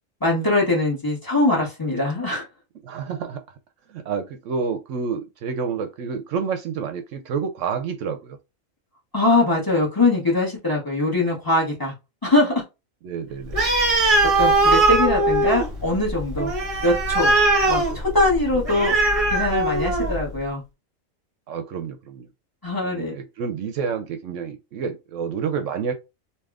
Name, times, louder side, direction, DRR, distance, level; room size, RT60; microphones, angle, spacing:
voice 1, 0.2-2.4 9.1-11.9 12.2-12.5 14.4-16.5 16.8-17.3 17.7-18.9 19.3-20.6 22.6-23.1, left 2 dB, 15° left, 1.4 m, -22 dB
voice 2, 2.8-3.4 3.9-8.4 13.0-13.6 17.9-18.0 21.5-22.3 22.8-25.9, right 6 dB, 70° right, 0.9 m, -29 dB
Animal, 13.5-20.3, right 2 dB, 30° right, 0.9 m, -20 dB
3.4 x 2.8 x 2.3 m
omnidirectional pair, 1.4 m